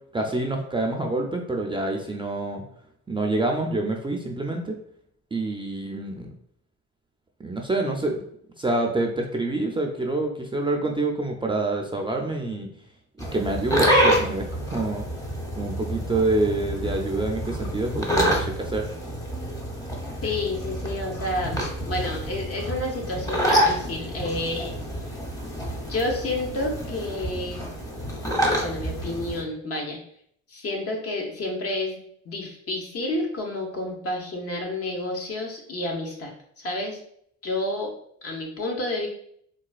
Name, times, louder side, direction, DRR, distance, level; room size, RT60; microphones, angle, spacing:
voice 1, 0.1-2.6 3.1-4.8 5.3-6.4 7.4-8.2 8.6-12.7 13.3-15.0 15.6-18.9, right 2 dB, 15° right, 1 dB, 0.4 m, -27 dB
sound 1, 13.2-29.4, equal, 10° left, 0.8 m, -27 dB
voice 2, 20.2-24.7 25.9-27.6 28.6-30.0 30.5-37.0 37.4-37.9 38.2-39.1, left 2 dB, 50° left, 1 dB, 0.9 m, -30 dB
3.9 x 2.2 x 2.4 m, 0.66 s
cardioid pair, 90°, 30 cm